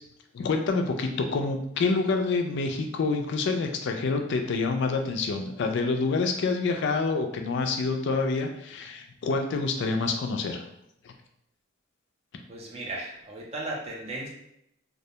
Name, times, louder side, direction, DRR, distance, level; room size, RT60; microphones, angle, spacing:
voice 1, 0.3-10.6 11.0-11.1, left 3 dB, 60° left, 4 dB, 0.3 m, -27 dB
voice 2, 12.5-14.3, right 2 dB, 30° right, -3 dB, 0.5 m, -36 dB
2.3 x 2.1 x 2.8 m, 0.75 s
head